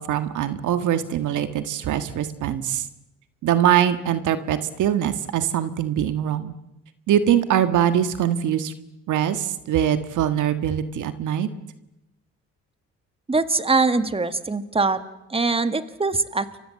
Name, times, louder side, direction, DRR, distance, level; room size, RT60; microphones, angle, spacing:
voice 1, 0.0-2.9 3.4-6.5 7.1-8.7 9.1-11.5, right 10 dB, 80° right, 11 dB, 1.7 m, -22 dB
voice 2, 13.3-15.0 15.3-16.6, right 3 dB, 20° right, 11 dB, 1.8 m, -22 dB
29.5 x 24.0 x 7.7 m, 0.93 s
cardioid pair, 90°, 30 cm